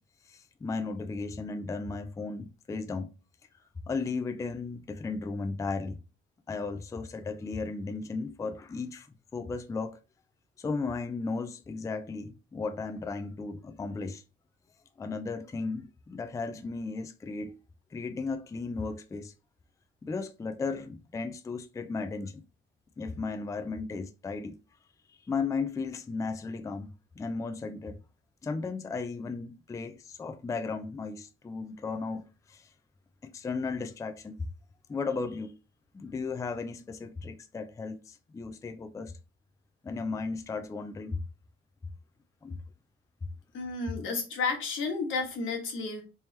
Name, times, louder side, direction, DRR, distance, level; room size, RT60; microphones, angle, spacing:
voice 1, 0.3-3.1 3.9-6.0 6.5-9.1 9.3-10.0 10.6-14.2 15.0-17.6 17.9-19.3 20.0-22.4 23.0-24.6 25.1-26.9 27.2-28.0 28.4-32.7 33.2-34.5 34.9-35.5 35.9-39.2 39.8-41.2 42.4-42.6, left 4 dB, 15° left, 0.3 m, -35 dB
voice 2, 43.5-46.0, left 4 dB, 80° left, 1.2 m, -32 dB
3.3 x 2.9 x 3.1 m
cardioid pair, 90°, 20 cm